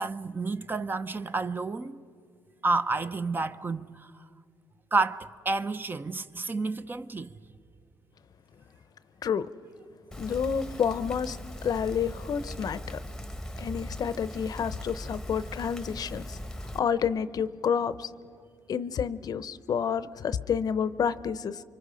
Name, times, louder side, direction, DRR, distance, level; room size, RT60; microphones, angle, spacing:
voice 1, 0.0-2.0 2.6-4.1 4.9-7.3, right 3 dB, 25° right, 0.7 m, -30 dB
Rain, 10.1-16.8, equal, 5° left, 1.1 m, -39 dB
voice 2, 10.2-11.4 11.6-13.0 13.6-16.4 16.7-18.1 18.7-21.6, left 7 dB, 55° left, 0.7 m, -29 dB
28.5 x 24.5 x 5.1 m
cardioid pair, 90°, 8 cm